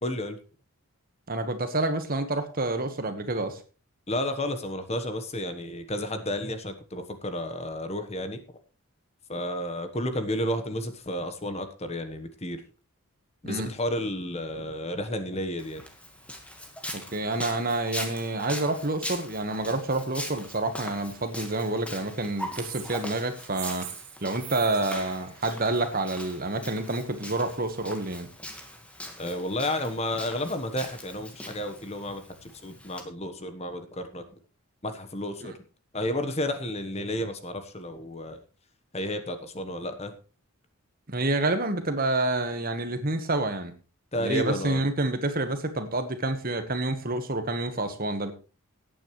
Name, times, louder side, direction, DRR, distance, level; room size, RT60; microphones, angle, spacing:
voice 1, 0.0-0.4 4.1-8.4 9.3-12.6 13.4-15.8 29.2-34.2 34.8-35.5 35.9-38.4 38.9-40.1 44.1-44.8, left 1 dB, 30° left, 9 dB, 1.2 m, -32 dB
voice 2, 1.3-3.6 13.5-13.7 16.9-23.9 24.2-28.3 35.4-35.5 41.1-43.7 44.2-48.3, right 2 dB, 40° right, 8 dB, 1.4 m, -28 dB
Walk footsteps, 15.6-33.0, left 1 dB, 5° left, 1.6 m, -41 dB
sound 1, 22.5-26.3, right 10 dB, 70° right, 2.4 m, -43 dB
17.5 x 9.1 x 3.2 m, 0.34 s
head